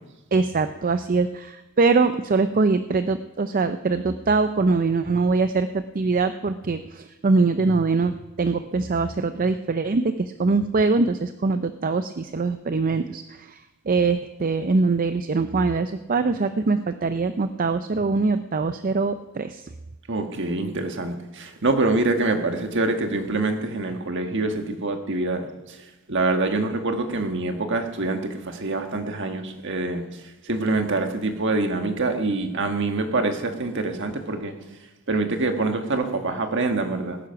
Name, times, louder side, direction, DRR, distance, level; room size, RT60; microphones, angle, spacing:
voice 1, 0.3-13.6 13.9-19.6, right 3 dB, 40° right, 10 dB, 0.5 m, -23 dB
voice 2, 20.1-25.8 26.1-34.5 35.1-37.2, right 2 dB, 55° right, 5 dB, 1.6 m, -25 dB
19.0 x 10.0 x 5.8 m, 1.0 s
head